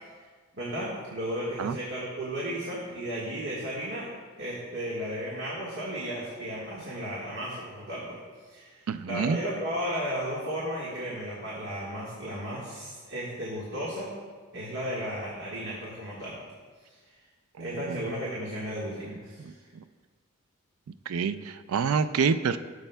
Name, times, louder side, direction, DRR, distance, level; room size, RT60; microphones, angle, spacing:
voice 1, 0.6-4.1 4.4-8.2 8.4-14.1 14.5-16.4 16.9-17.0 17.6-19.5, equal, 60° right, -6 dB, 1.5 m, -34 dB
voice 2, 8.9-9.4 17.6-18.0 19.4-19.5 21.1-22.6, right 6 dB, 90° right, 12 dB, 0.4 m, -27 dB
13.5 x 7.1 x 2.3 m, 1.5 s
head